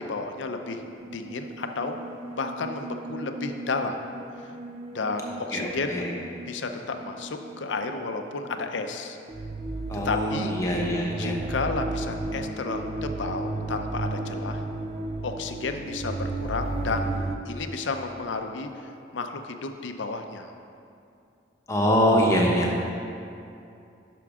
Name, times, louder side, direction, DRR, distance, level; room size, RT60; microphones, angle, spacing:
voice 1, 0.0-2.0 2.4-4.0 4.4-4.5 4.9-6.1 6.5-9.2 10.0-10.5 11.2-14.6 15.2-17.1 17.5-20.5, left 3 dB, 75° left, 6 dB, 0.6 m, -32 dB
sound 1, 0.7-8.0 8.4-8.8 9.3-17.4, right 2 dB, 35° right, 0.4 m, -34 dB
voice 2, 5.5-6.2 9.9-11.4 21.7-22.7, equal, 15° left, -2 dB, 1.0 m, -24 dB
10.5 x 6.0 x 3.6 m, 2.6 s
head